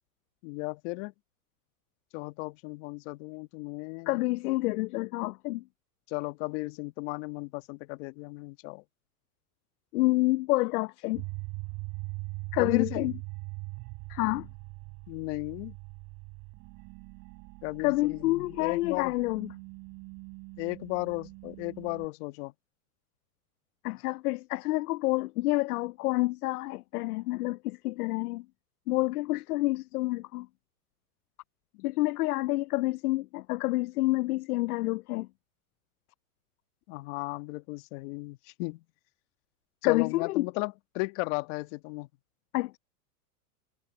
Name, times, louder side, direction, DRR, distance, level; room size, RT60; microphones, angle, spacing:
voice 1, 0.4-1.1 2.1-4.2 6.1-8.8 12.6-13.1 15.1-15.7 17.6-19.1 20.6-22.5 31.8-31.9 36.9-38.8 39.8-42.1, left 25 dB, 50° left, 1.7 m, -35 dB
voice 2, 4.1-5.6 9.9-11.2 12.5-13.1 14.1-14.5 17.8-19.5 23.8-28.5 28.9-30.5 31.8-35.3 39.8-40.5 42.5-42.8, left 20 dB, 70° left, 0.6 m, -28 dB
sound 1, 11.1-22.1, right 28 dB, 45° right, 3.7 m, -42 dB
supercardioid pair, 135°, 46 cm